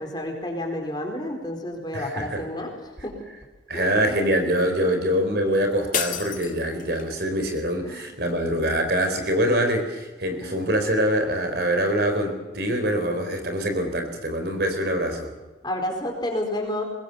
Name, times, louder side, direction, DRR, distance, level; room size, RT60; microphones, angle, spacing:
voice 1, 0.0-2.7 3.0-3.2 3.7-4.0 4.8-5.0 7.8-8.0 10.4-10.6 15.6-16.8, left 1 dB, 25° left, 2 dB, 4.3 m, -30 dB
voice 2, 1.9-2.4 3.7-15.3, equal, 55° right, 6 dB, 4.2 m, -24 dB
sound 1, 5.9-7.2, left 8 dB, 45° left, 2.1 m, -30 dB
24.0 x 20.5 x 7.1 m, 1.1 s
head